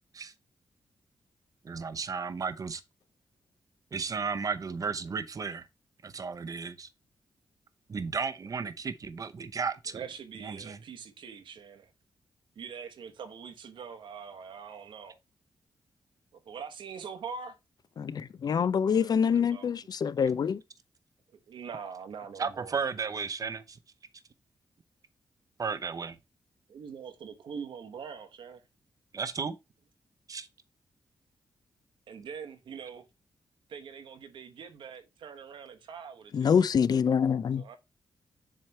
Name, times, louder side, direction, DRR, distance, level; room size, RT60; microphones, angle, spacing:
voice 1, 1.6-2.8 3.9-5.7 6.0-6.9 7.9-10.0 10.4-10.8 22.4-23.8 25.6-26.2 29.1-29.6 30.3-30.5, right 5 dB, 45° right, 0.7 m, -34 dB
voice 2, 9.9-11.9 12.5-15.2 16.3-17.5 18.9-19.7 21.5-22.8 26.7-28.6 32.1-33.0 33.7-36.5 37.6-37.8, right 6 dB, 85° right, 1.1 m, -43 dB
voice 3, 18.0-20.6 36.3-37.6, left 7 dB, 55° left, 0.4 m, -25 dB
7.5 x 3.3 x 4.2 m
cardioid pair, 80°, 8 cm